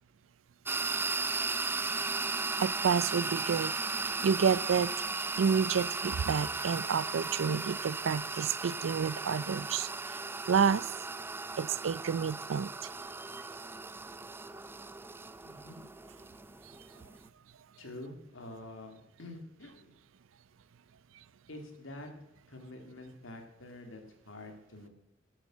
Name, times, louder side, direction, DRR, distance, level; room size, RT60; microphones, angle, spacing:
sound 1, 0.7-17.3, right 3 dB, 10° right, 0.4 m, -36 dB
voice 1, 2.6-3.7 4.2-4.9 5.4-10.2 10.4-10.9 11.6-12.7, right 6 dB, 85° right, 20 dB, 0.4 m, -29 dB
voice 2, 15.4-15.8 17.8-19.9 21.5-22.1 22.5-24.9, left 2 dB, 90° left, 4 dB, 2.4 m, -47 dB
12.0 x 9.0 x 6.3 m, 0.81 s
head